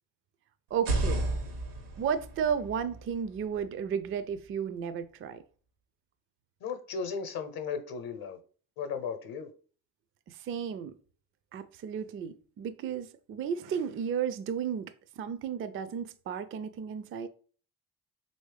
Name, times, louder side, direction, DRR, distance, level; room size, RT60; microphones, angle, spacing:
voice 1, 0.7-1.2 2.0-5.4 10.3-10.9 11.5-17.3, right 7 dB, 30° right, 0.4 m, -33 dB
sound 1, 0.7-4.5, right 2 dB, 90° right, 1.0 m, -34 dB
voice 2, 6.6-8.4 8.8-9.5, left 6 dB, 55° left, 0.8 m, -35 dB
3.1 x 2.7 x 3.3 m
hypercardioid pair, 55°, 43 cm